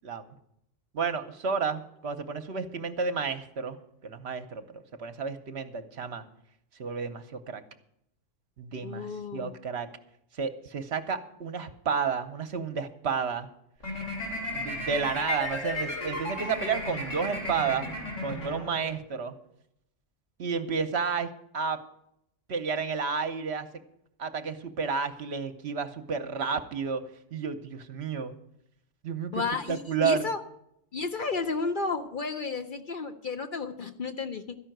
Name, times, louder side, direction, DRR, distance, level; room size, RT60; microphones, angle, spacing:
voice 1, 0.0-0.3 0.9-3.8 4.0-6.2 6.8-7.6 8.6-9.9 10.3-13.5 14.5-17.9 18.2-19.3 20.4-21.8 22.5-23.7 24.2-27.0 27.3-28.3 29.0-29.4 29.7-30.3, right 5 dB, 60° right, 9 dB, 1.1 m, -31 dB
voice 2, 8.8-9.5 29.3-30.4 30.9-34.6, left 4 dB, 50° left, 7 dB, 0.7 m, -32 dB
sound 1, 13.8-19.1, left 1 dB, 85° left, 4.0 m, -34 dB
13.0 x 5.6 x 9.1 m, 0.76 s
omnidirectional pair, 1.3 m